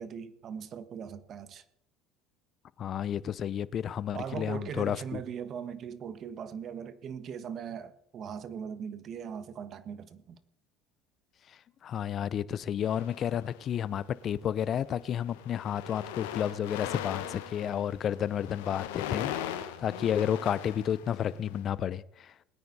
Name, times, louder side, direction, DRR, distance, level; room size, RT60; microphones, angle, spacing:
voice 1, 0.0-1.6 4.1-10.4, right 7 dB, 45° right, 1.4 m, -40 dB
voice 2, 2.8-5.2 11.8-22.3, left 9 dB, 45° left, 0.6 m, -31 dB
sound 1, 12.8-13.8 14.6-14.8 15.1-21.6, left 11 dB, 85° left, 1.2 m, -39 dB
20.5 x 9.4 x 4.1 m
supercardioid pair, 90°, 0 cm